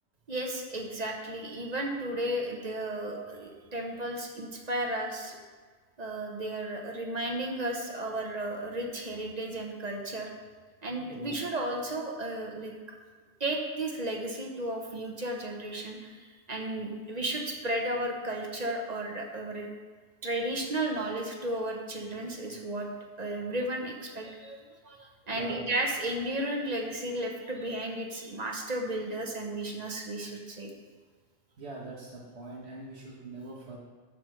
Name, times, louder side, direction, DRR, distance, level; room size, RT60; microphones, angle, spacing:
voice 1, 0.3-5.4 6.0-10.3 10.8-12.7 13.4-19.7 20.2-22.9 23.2-30.7, right 1 dB, 40° right, 1 dB, 0.9 m, -34 dB
voice 2, 11.0-11.4 25.3-25.7 31.6-33.8, right 2 dB, 70° right, -4 dB, 1.5 m, -43 dB
9.3 x 3.3 x 6.4 m, 1.5 s
omnidirectional pair, 1.1 m